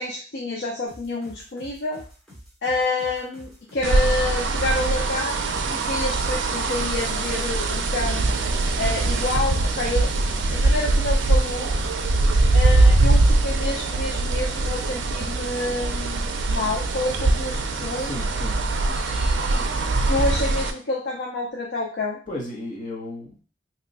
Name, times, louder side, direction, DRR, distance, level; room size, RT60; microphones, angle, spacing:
voice 1, 0.0-2.0 2.6-8.3 8.7-10.2 10.5-11.7 12.5-18.1 18.9-19.7 20.1-22.2, left 2 dB, 60° left, -2 dB, 0.5 m, -28 dB
sound 1, 0.9-12.1, equal, ahead, 1.1 m, -47 dB
sound 2, 3.8-20.7, right 2 dB, 70° right, 0.4 m, -22 dB
voice 2, 17.9-18.6 22.3-23.4, left 1 dB, 45° left, -2 dB, 1.0 m, -34 dB
2.9 x 2.2 x 3.9 m, 0.38 s
head